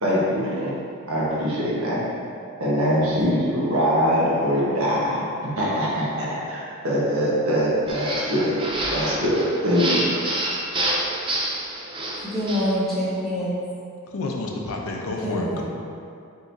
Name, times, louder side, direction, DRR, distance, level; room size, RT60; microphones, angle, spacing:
voice 1, 0.0-0.8 1.1-2.0 2.6-8.6 8.9-10.1, equal, 75° right, -7 dB, 1.2 m, -23 dB
sound 1, 7.9-12.7, right 1 dB, 25° right, 0.4 m, -28 dB
voice 2, 12.2-13.6 15.2-15.6, equal, ahead, -11 dB, 0.9 m, -25 dB
voice 3, 14.1-15.6, left 2 dB, 75° left, 0 dB, 0.6 m, -29 dB
4.9 x 3.9 x 2.6 m, 2.4 s
head